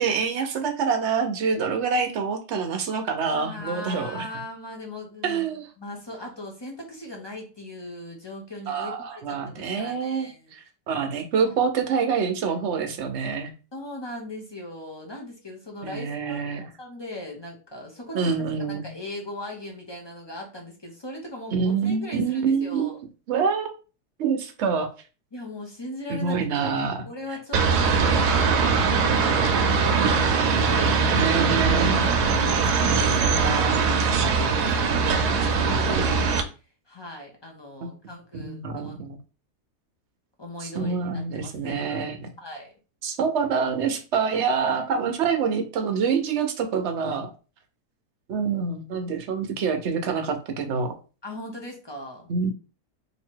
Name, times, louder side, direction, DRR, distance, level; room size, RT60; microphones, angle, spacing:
voice 1, 0.0-4.3 5.2-5.7 8.7-13.5 15.8-16.7 18.1-18.9 21.5-22.9 23.3-23.7 24.2-24.9 26.1-27.0 27.9-28.2 31.1-32.0 33.3-34.0 38.3-39.2 40.6-42.3 43.0-47.3 48.3-50.9 52.3-52.5, right 5 dB, 55° right, 6 dB, 0.9 m, -26 dB
voice 2, 3.3-5.4 5.8-10.5 11.4-11.5 12.1-12.2 12.5-12.6 13.7-18.3 18.7-23.0 25.3-31.3 31.8-33.6 34.2-36.3 36.9-39.0 40.4-42.0 42.4-42.7 44.6-44.8 51.2-52.3, left 1 dB, 30° left, 1 dB, 0.5 m, -39 dB
sound 1, 27.5-36.4, right 5 dB, 80° right, 1.2 m, -21 dB
3.1 x 2.8 x 4.4 m, 0.34 s
omnidirectional pair, 1.7 m